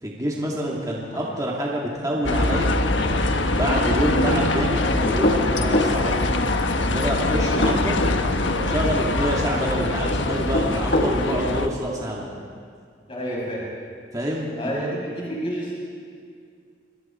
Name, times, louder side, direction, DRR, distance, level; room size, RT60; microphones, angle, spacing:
voice 1, 0.0-2.7 3.5-6.1 6.8-8.0 8.6-12.3 14.1-14.8, equal, 20° right, -3 dB, 2.5 m, -27 dB
sound 1, 2.2-11.7, left 2 dB, 85° left, 1.4 m, -23 dB
sound 2, 5.0-6.0 7.4-8.2 10.3-11.2, left 1 dB, 60° left, 2.5 m, -23 dB
voice 2, 13.1-13.7 14.6-15.7, equal, 30° left, -5 dB, 7.6 m, -29 dB
28.0 x 25.0 x 4.6 m, 2.2 s
head